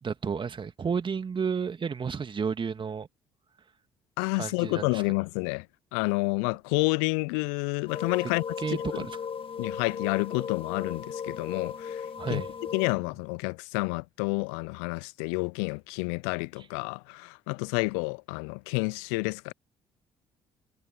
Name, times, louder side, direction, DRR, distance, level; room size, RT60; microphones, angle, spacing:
voice 1, 0.0-3.1 4.4-5.0 8.6-9.2 12.2-12.5, right 6 dB, 35° right, 2.0 m, -31 dB
voice 2, 4.2-5.7 5.9-9.1 9.6-12.4 12.7-19.5, left 33 dB, 75° left, 0.5 m, -29 dB
sound 1, 7.9-12.9, left 7 dB, 40° left, 1.9 m, -36 dB
hypercardioid pair, 50°, 14 cm